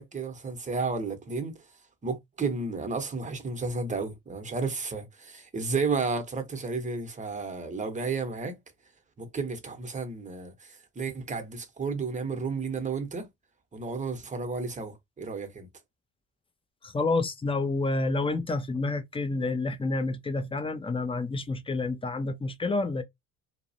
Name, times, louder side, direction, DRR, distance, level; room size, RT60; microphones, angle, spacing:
voice 1, 0.0-1.6 2.0-8.6 9.2-13.3 13.7-15.7, right 4 dB, 15° right, 0.8 m, -32 dB
voice 2, 16.8-23.0, left 3 dB, 15° left, 0.4 m, -29 dB
2.3 x 2.0 x 2.7 m
hypercardioid pair, 55°, 46 cm